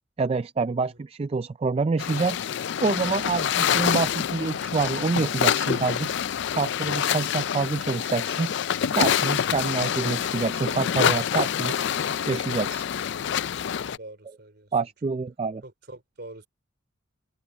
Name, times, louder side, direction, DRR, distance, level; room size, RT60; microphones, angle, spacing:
voice 1, 0.2-2.4 2.8-6.1 6.5-8.5 8.9-11.8 12.3-12.9 14.7-15.6, right 4 dB, 30° right, 0.3 m, -27 dB
sound 1, 2.0-14.0, left 8 dB, 60° left, 0.4 m, -26 dB
voice 2, 14.0-14.7 15.6-16.5, right 2 dB, 55° right, 3.6 m, -45 dB
head